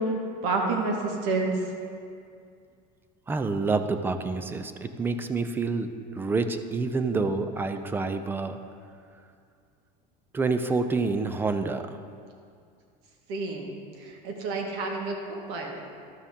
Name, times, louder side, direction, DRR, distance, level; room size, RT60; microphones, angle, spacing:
voice 1, 0.0-1.6 13.3-15.8, right 3 dB, 60° right, 1 dB, 1.6 m, -29 dB
voice 2, 3.3-5.9 6.1-8.6 10.3-12.0, right 4 dB, 10° right, 9 dB, 0.3 m, -28 dB
13.0 x 6.6 x 3.6 m, 2.3 s
supercardioid pair, 145°, 20 cm